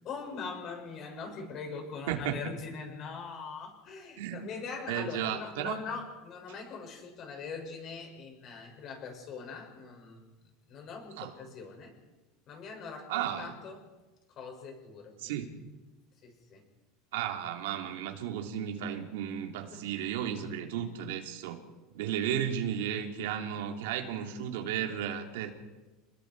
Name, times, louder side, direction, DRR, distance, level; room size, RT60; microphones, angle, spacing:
voice 1, 0.0-10.2 10.7-11.9 12.5-13.9 14.4-15.4 16.2-16.6 19.7-19.9 20.4-20.6, left 5 dB, 45° left, 2 dB, 7.3 m, -42 dB
voice 2, 2.1-2.4 4.2-4.4 4.9-5.7 11.2-11.3 13.1-13.5 15.2-15.5 17.1-21.6 21.9-25.5, right 9 dB, 85° right, 4 dB, 3.3 m, -34 dB
29.5 x 21.0 x 4.9 m, 1.1 s
supercardioid pair, 130°, 0 cm